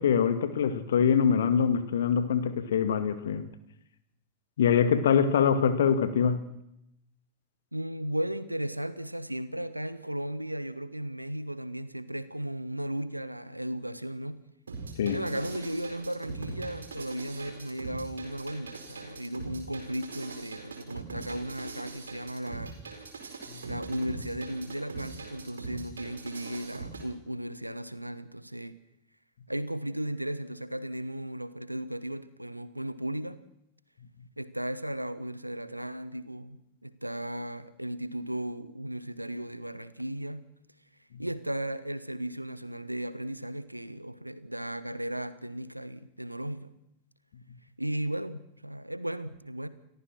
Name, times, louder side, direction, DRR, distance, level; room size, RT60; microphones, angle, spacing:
voice 1, 0.0-3.4 4.6-6.5 15.0-15.2, left 7 dB, 60° left, 10 dB, 2.1 m, -24 dB
voice 2, 7.7-14.4 15.1-22.7 23.6-28.7 29.5-33.4 34.4-40.4 41.2-46.7 47.8-49.7, right 1 dB, 90° right, 15 dB, 1.2 m, -35 dB
sound 1, 14.7-27.0, right 4 dB, 70° right, 4.5 m, -42 dB
29.0 x 14.0 x 6.2 m, 0.78 s
figure-of-eight pair, 90°, 0 cm